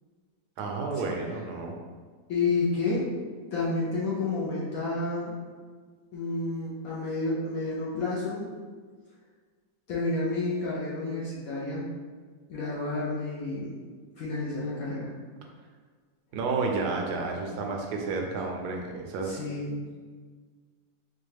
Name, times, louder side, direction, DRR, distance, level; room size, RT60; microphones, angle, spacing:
voice 1, 0.6-1.7 16.3-19.4, right 4 dB, 70° right, 1 dB, 1.1 m, -31 dB
voice 2, 2.3-3.1 3.5-5.4 6.1-8.5 9.9-11.8 12.5-13.8 14.2-15.1 19.2-19.8, left 3 dB, 60° left, -6 dB, 1.0 m, -30 dB
4.4 x 2.4 x 3.3 m, 1.5 s
omnidirectional pair, 2.0 m